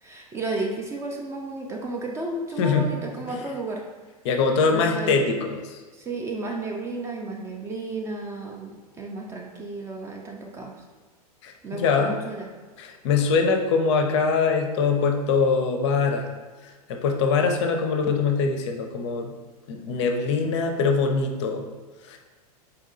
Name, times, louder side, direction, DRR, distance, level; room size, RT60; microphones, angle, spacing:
voice 1, 0.0-3.8 4.7-5.2 5.9-10.7 11.6-12.5, right 2 dB, 15° right, 0 dB, 0.3 m, -33 dB
voice 2, 4.2-5.8 11.4-12.1 12.8-16.3 16.9-19.3 19.7-21.6 22.1-22.2, left 5 dB, 45° left, 4 dB, 0.5 m, -23 dB
4.4 x 2.6 x 2.6 m, 1.4 s
figure-of-eight pair, 95°, 20 cm